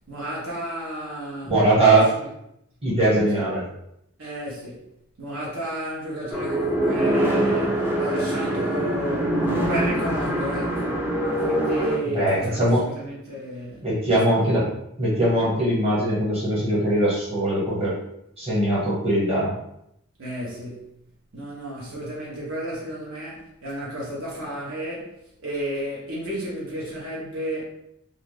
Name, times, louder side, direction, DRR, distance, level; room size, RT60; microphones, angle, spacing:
voice 1, 0.1-1.6 1.9-2.1 3.3-3.5 4.2-4.8 5.2-13.9 14.3-14.6 20.2-20.9 21.3-27.6, right 1 dB, 70° right, -6 dB, 0.8 m, -32 dB
voice 2, 1.4-2.0 2.8-3.6 12.1-12.8 13.8-14.6 15.0-17.9 18.4-19.5, right 1 dB, 30° right, -7 dB, 1.2 m, -21 dB
sound 1, 6.3-12.0, right 1 dB, 10° right, 0.4 m, -24 dB
2.4 x 2.4 x 3.2 m, 0.78 s
head